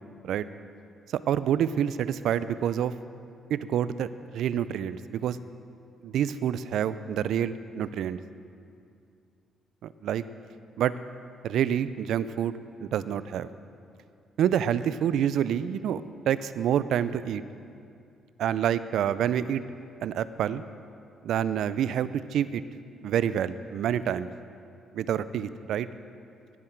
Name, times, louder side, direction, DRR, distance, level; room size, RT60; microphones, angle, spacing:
voice 1, 1.3-2.9 3.5-4.1 4.3-5.4 6.0-8.2 9.8-10.2 10.8-10.9 11.4-13.5 14.4-17.4 18.4-19.6 20.0-20.6 21.2-22.6 23.0-24.3 24.9-25.9, right 9 dB, 75° right, 15 dB, 0.3 m, -27 dB
18.0 x 7.4 x 4.5 m, 2.4 s
cardioid pair, 90°, 0 cm